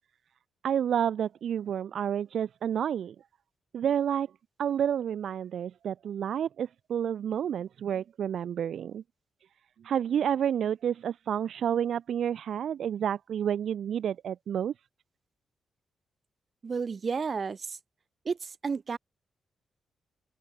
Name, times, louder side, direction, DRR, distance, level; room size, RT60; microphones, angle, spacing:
voice 1, 0.6-3.2 3.7-4.3 4.6-9.0 9.8-14.7, right 9 dB, 75° right, 0.4 m, -30 dB
voice 2, 16.6-17.8 18.2-19.0, right 5 dB, 50° right, 1.6 m, -32 dB
open air
cardioid pair, 70°, 0 cm